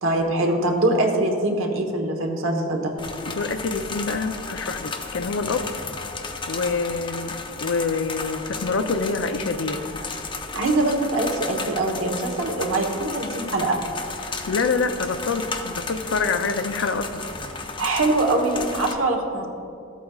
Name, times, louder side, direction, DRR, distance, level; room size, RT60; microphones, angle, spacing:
voice 1, 0.0-2.9 10.5-13.8 17.8-19.5, right 2 dB, 85° right, 3 dB, 1.2 m, -23 dB
sound 1, 3.0-18.9, left 4 dB, 25° left, 0.5 m, -34 dB
voice 2, 3.2-5.7 6.5-9.9 14.2-17.2, left 4 dB, 70° left, 9 dB, 0.5 m, -26 dB
14.0 x 8.3 x 2.4 m, 2.6 s
head